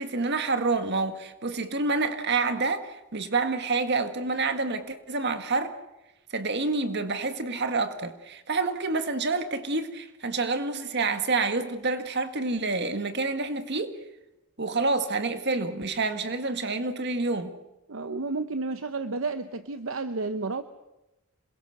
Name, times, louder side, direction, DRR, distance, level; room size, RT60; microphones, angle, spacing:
voice 1, 0.0-5.7 6.3-14.0 14.6-17.5, right 3 dB, 50° right, 1.9 m, -28 dB
voice 2, 17.9-20.6, right 3 dB, 65° right, 0.9 m, -31 dB
27.5 x 22.0 x 6.6 m
head